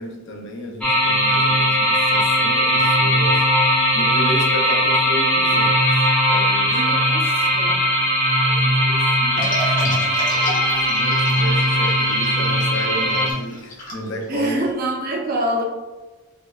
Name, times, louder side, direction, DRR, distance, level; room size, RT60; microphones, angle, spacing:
voice 1, 0.0-3.4 3.7-5.8 6.3-7.0 8.5-10.2 10.8-14.6, equal, 55° left, 1 dB, 0.6 m, -33 dB
sound 1, 0.8-13.3, equal, 5° left, 0.5 m, -19 dB
voice 2, 6.7-7.8 14.3-15.6, right 1 dB, 40° right, 1 dB, 0.6 m, -25 dB
sound 2, 9.4-14.7, left 1 dB, 35° left, 1.0 m, -32 dB
5.0 x 2.1 x 2.4 m, 1.2 s
head